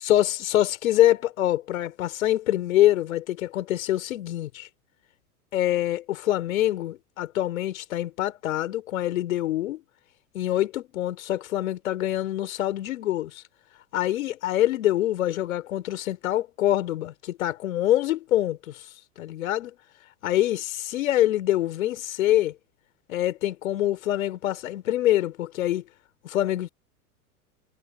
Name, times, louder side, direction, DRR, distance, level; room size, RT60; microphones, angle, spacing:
voice 1, 0.0-4.7 5.5-9.8 10.3-13.4 13.9-18.8 19.2-19.8 20.2-22.6 23.1-25.8 26.2-26.7, left 13 dB, 60° left, 3.9 m, -25 dB
figure-of-eight pair, 90°, 46 cm